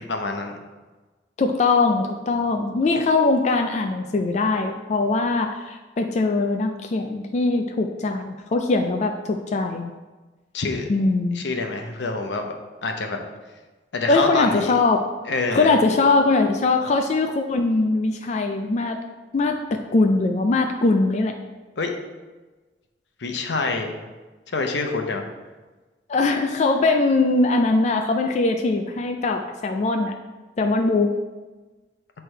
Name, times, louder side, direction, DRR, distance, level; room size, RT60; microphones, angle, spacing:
voice 1, 0.1-0.6 10.5-10.9 11.3-13.2 13.9-14.8 15.2-15.7 21.8-22.0 23.2-23.9 24.5-25.3, left 3 dB, 85° left, 3 dB, 0.8 m, -26 dB
voice 2, 1.4-9.9 10.9-11.4 14.1-15.0 15.5-19.0 19.3-21.4 26.1-30.1 30.6-31.1, left 3 dB, 40° left, 4 dB, 0.4 m, -21 dB
8.1 x 3.3 x 4.4 m, 1.2 s
head